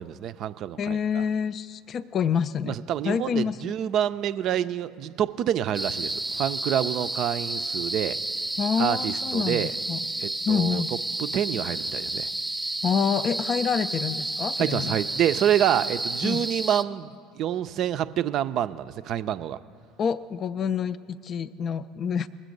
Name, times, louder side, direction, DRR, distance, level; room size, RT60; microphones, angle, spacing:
voice 1, 0.0-1.0 2.7-8.2 8.8-9.7 10.2-10.8 11.2-12.3 14.6-19.6, right 10 dB, 50° right, 13 dB, 0.4 m, -27 dB
voice 2, 0.8-2.8 3.0-3.7 8.6-10.0 10.5-10.9 12.8-15.0 16.2-16.5 20.0-22.3, left 7 dB, 40° left, 13 dB, 0.4 m, -27 dB
sound 1, 5.7-16.8, right 2 dB, 10° right, 0.7 m, -31 dB
20.5 x 7.5 x 5.2 m, 2.3 s
figure-of-eight pair, 65°, 0 cm